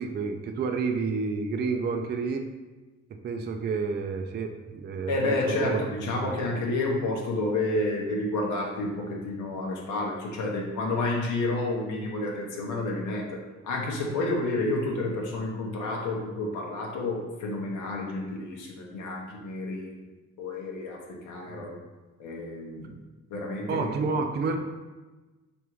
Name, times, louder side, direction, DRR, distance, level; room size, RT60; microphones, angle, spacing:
voice 1, 0.0-2.4 3.2-5.8 6.2-6.3 21.5-21.7 23.7-24.5, right 4 dB, 35° right, 5 dB, 0.4 m, -30 dB
voice 2, 5.1-20.0 20.4-21.8 22.2-23.0 23.3-23.9, left 2 dB, 80° left, -1 dB, 0.7 m, -30 dB
3.5 x 2.5 x 4.4 m, 1.2 s
cardioid pair, 90°, 30 cm